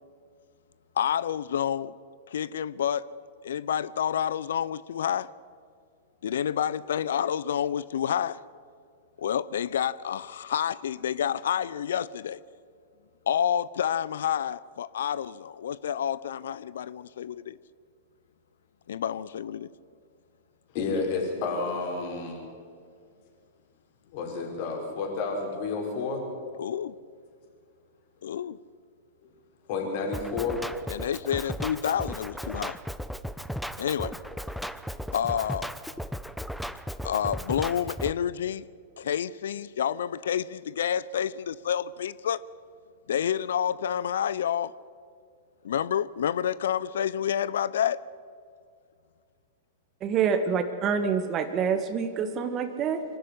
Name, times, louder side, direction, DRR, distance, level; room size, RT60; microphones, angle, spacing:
voice 1, 1.0-2.0 2.3-3.1 3.4-5.3 6.2-8.4 9.2-12.4 13.3-17.6 18.9-19.7 26.6-26.9 28.2-28.6 30.9-32.8 33.8-34.1 35.1-35.7 37.0-38.7 39.0-42.4 43.1-44.7 45.6-48.0, left 9 dB, 75° left, 0.5 m, -29 dB
voice 2, 20.7-22.4 24.1-26.2 29.2-29.3 29.7-30.6 33.3-33.4, left 4 dB, 55° left, 5.5 m, -30 dB
Drum kit, 30.1-38.1, equal, ahead, 0.9 m, -36 dB
voice 3, 50.0-53.0, right 6 dB, 35° right, 1.7 m, -26 dB
24.0 x 12.5 x 10.0 m
hypercardioid pair, 110°, 0 cm